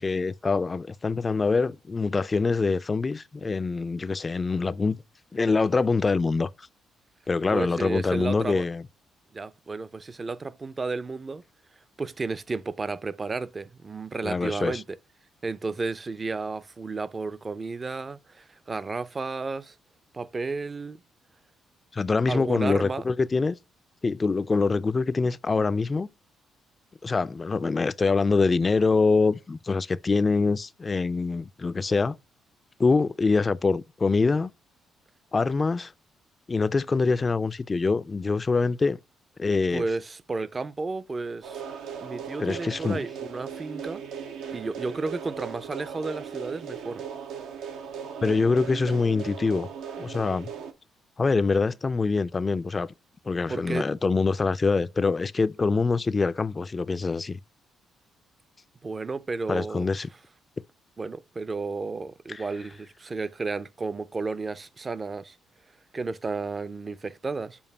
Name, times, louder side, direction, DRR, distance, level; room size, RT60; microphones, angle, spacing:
voice 1, 0.0-5.0 5.3-6.5 7.3-8.8 14.2-14.8 21.9-23.6 24.0-26.1 27.0-32.2 32.8-34.5 35.3-35.9 36.5-39.0 39.4-39.8 42.4-43.0 48.2-49.7 50.0-50.5 51.2-52.9 53.3-57.4 59.5-60.1 62.3-62.4, left 4 dB, 30° left, 0.4 m, -24 dB
voice 2, 7.5-8.6 9.3-11.4 12.0-15.0 15.4-19.8 20.1-21.0 22.3-23.1 37.0-37.2 39.7-41.6 42.0-44.1 44.5-47.0 53.5-53.9 58.8-59.9 61.0-65.4 65.9-67.6, right 3 dB, 30° right, 0.5 m, -32 dB
sound 1, 41.4-50.7, right 7 dB, 85° right, 0.8 m, -38 dB
7.0 x 2.6 x 5.4 m
cardioid pair, 80°, 0 cm